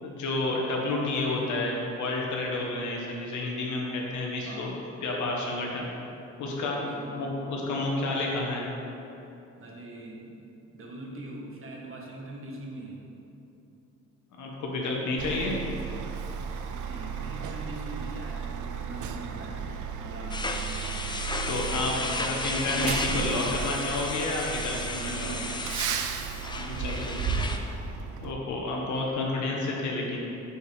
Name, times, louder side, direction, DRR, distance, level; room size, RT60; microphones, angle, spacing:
voice 1, 0.0-4.7 5.0-5.9 6.4-6.8 7.1-8.7 14.4-15.5 21.5-25.3 26.8-27.0 28.2-30.2, left 2 dB, 75° left, -1 dB, 1.5 m, -30 dB
voice 2, 4.4-4.8 6.8-7.3 9.6-10.4 10.7-13.0 16.7-21.2 21.7-22.5 22.9-23.6 25.0-25.6 26.5-27.6, right 2 dB, 45° right, -1 dB, 1.5 m, -42 dB
Truck, 15.2-28.3, right 6 dB, 75° right, 0.6 m, -34 dB
sound 1, 20.3-27.6, left 3 dB, 15° left, 0.6 m, -34 dB
6.4 x 5.6 x 5.0 m, 2.9 s
cardioid pair, 90°, 30 cm